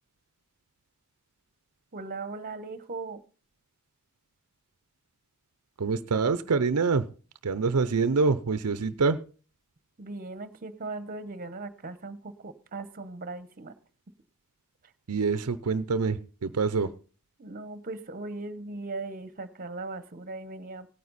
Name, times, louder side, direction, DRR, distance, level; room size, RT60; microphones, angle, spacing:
voice 1, 1.9-3.2 10.0-13.7 17.4-20.9, right 3 dB, 40° right, 13 dB, 1.1 m, -38 dB
voice 2, 5.8-7.1 7.4-9.2 15.1-16.9, right 4 dB, 80° right, 13 dB, 0.6 m, -26 dB
17.0 x 9.5 x 4.1 m, 0.39 s
head